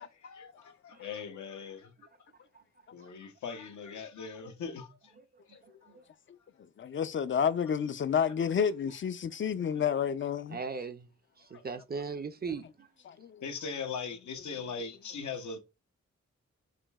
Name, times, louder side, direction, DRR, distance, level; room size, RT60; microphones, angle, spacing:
voice 1, 0.2-1.9 2.9-5.1 5.5-5.6 13.4-15.6, left 5 dB, 80° left, 0.7 m, -40 dB
voice 2, 5.6-6.0 10.5-11.1 11.4-12.9, right 4 dB, 35° right, 0.5 m, -39 dB
voice 3, 6.8-10.6 13.1-13.5 14.5-14.6, left 7 dB, 45° left, 0.4 m, -30 dB
4.9 x 2.6 x 2.3 m
cardioid pair, 65°, 29 cm